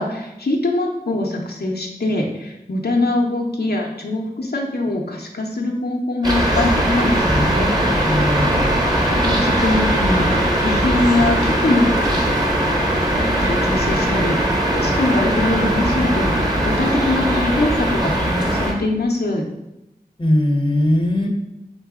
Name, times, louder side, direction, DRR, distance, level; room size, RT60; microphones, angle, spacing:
voice 1, 0.0-7.7 9.1-11.9 13.4-19.4, left 2 dB, 80° left, 0 dB, 0.7 m, -22 dB
sound 1, 6.2-18.7, right 1 dB, 25° right, 1.0 m, -19 dB
voice 2, 8.0-8.7 20.2-21.3, left 1 dB, 30° left, 2 dB, 0.7 m, -19 dB
4.0 x 3.7 x 3.6 m, 0.91 s
wide cardioid pair, 45°, 16 cm